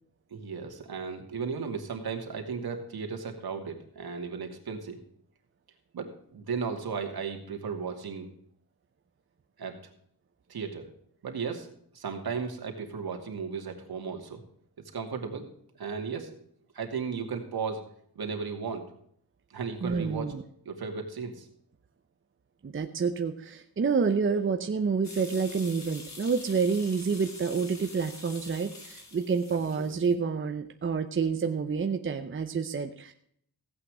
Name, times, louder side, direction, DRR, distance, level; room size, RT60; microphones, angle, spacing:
voice 1, 0.3-5.0 5.9-8.3 9.6-9.9 10.5-10.9 11.2-14.4 14.9-15.5 15.8-16.4 16.7-17.8 18.2-18.8 19.5-20.3 20.7-21.5 29.8-29.9, right 5 dB, 70° right, 4 dB, 2.6 m, -35 dB
voice 2, 19.8-20.4 22.6-33.1, right 5 dB, 30° right, 6 dB, 0.8 m, -28 dB
sound 1, 25.0-30.1, left 3 dB, 45° left, 3.1 m, -46 dB
16.0 x 8.6 x 4.9 m, 0.67 s
wide cardioid pair, 165°, 38 cm